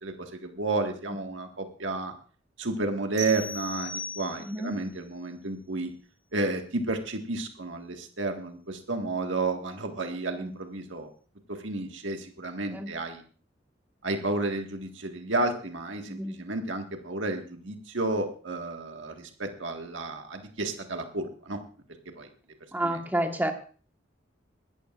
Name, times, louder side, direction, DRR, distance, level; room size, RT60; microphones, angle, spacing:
voice 1, 0.0-2.1 2.6-5.9 6.3-11.1 11.5-13.2 14.0-21.6 22.2-22.3 22.8-23.0, right 2 dB, 90° right, 4 dB, 1.8 m, -32 dB
sound 1, 3.2-4.7, left 1 dB, 40° right, 4.5 m, -37 dB
voice 2, 4.4-4.8 10.4-10.5 12.7-12.9 16.1-16.4 22.7-23.5, right 1 dB, 10° right, 5 dB, 1.4 m, -30 dB
21.0 x 13.5 x 2.5 m, 0.39 s
head